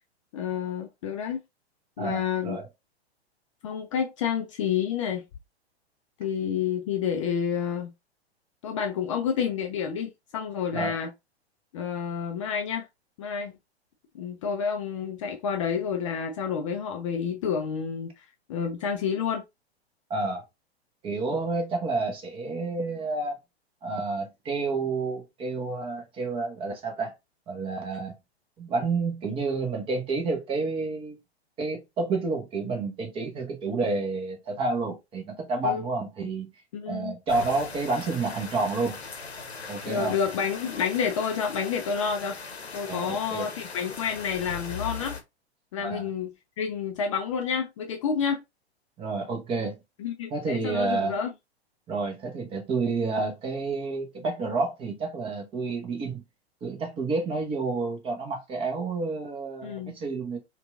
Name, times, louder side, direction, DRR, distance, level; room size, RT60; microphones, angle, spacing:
voice 1, 0.3-1.4 2.0-2.6 3.6-5.2 6.2-7.9 8.6-11.1 11.7-12.9 13.2-13.6 14.1-18.1 18.5-19.4 35.6-35.8 36.7-37.1 39.8-42.4 42.7-45.2 45.7-48.4 50.0-51.3 59.6-59.9, left 7 dB, 30° left, 0.4 m, -29 dB
voice 2, 2.0-2.6 10.7-10.9 20.1-20.4 21.0-23.4 23.8-27.1 27.5-28.1 28.6-31.2 31.6-36.5 36.9-39.0 39.7-40.2 42.9-43.5 45.8-46.1 49.0-49.8 50.3-51.2 51.9-56.2 56.6-60.4, right 3 dB, 15° right, 0.8 m, -29 dB
sound 1, 37.3-45.2, left 5 dB, 80° left, 0.8 m, -39 dB
4.2 x 2.3 x 2.4 m
figure-of-eight pair, 105°, 33 cm